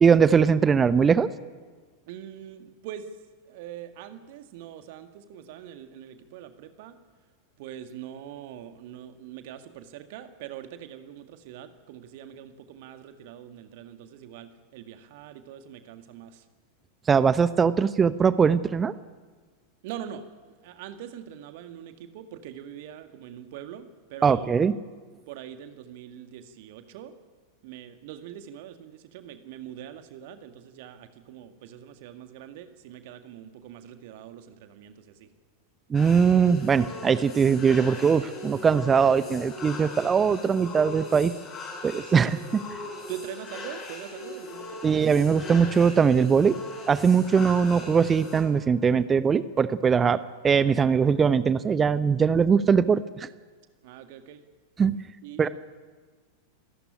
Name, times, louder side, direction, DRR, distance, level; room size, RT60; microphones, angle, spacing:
voice 1, 0.0-1.3 17.1-18.9 24.2-24.7 35.9-41.3 41.8-42.4 44.8-46.5 46.9-50.2 50.4-53.3 54.8-54.9 55.4-55.5, right 6 dB, 20° right, 15 dB, 0.9 m, -21 dB
voice 2, 2.1-3.2 3.4-7.0 7.6-16.5 19.8-20.3 20.6-24.7 25.3-27.2 27.6-35.3 42.0-45.0 53.8-54.4 55.2-55.5, right 10 dB, 50° right, 8 dB, 2.0 m, -43 dB
sound 1, 35.9-48.4, left 2 dB, 30° left, 8.0 m, -40 dB
27.5 x 14.0 x 10.0 m, 1.5 s
figure-of-eight pair, 90°, 0 cm